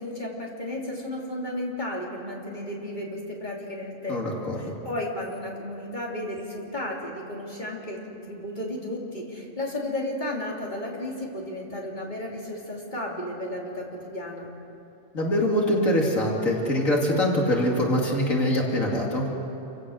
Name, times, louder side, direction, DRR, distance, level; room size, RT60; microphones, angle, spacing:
voice 1, 0.0-14.5, left 1 dB, 35° left, -2 dB, 3.3 m, -33 dB
voice 2, 4.1-4.7 15.1-19.3, left 1 dB, 80° left, -1 dB, 3.0 m, -24 dB
27.5 x 16.5 x 6.4 m, 2.9 s
omnidirectional pair, 1.4 m